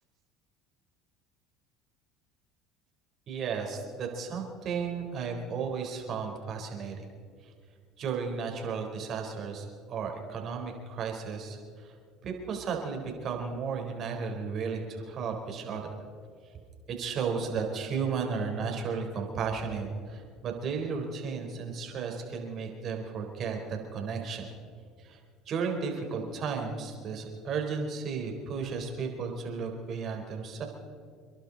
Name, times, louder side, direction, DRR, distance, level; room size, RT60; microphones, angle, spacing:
voice 1, 3.3-7.1 7.4-7.5 8.0-11.9 12.2-15.9 16.9-24.5 25.0-25.2 25.5-30.7, right 5 dB, 50° right, 2 dB, 4.1 m, -34 dB
29.0 x 11.5 x 4.1 m, 2.2 s
supercardioid pair, 85°, 0 cm